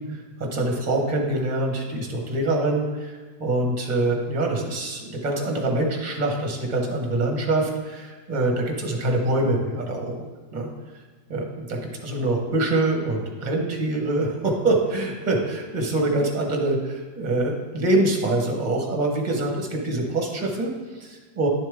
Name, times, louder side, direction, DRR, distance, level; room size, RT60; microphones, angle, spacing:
voice 1, 0.0-3.1 3.4-10.2 10.5-10.7 11.3-21.5, right 2 dB, 30° right, 1 dB, 1.3 m, -25 dB
11.0 x 7.2 x 3.6 m, 1.4 s
omnidirectional pair, 1.8 m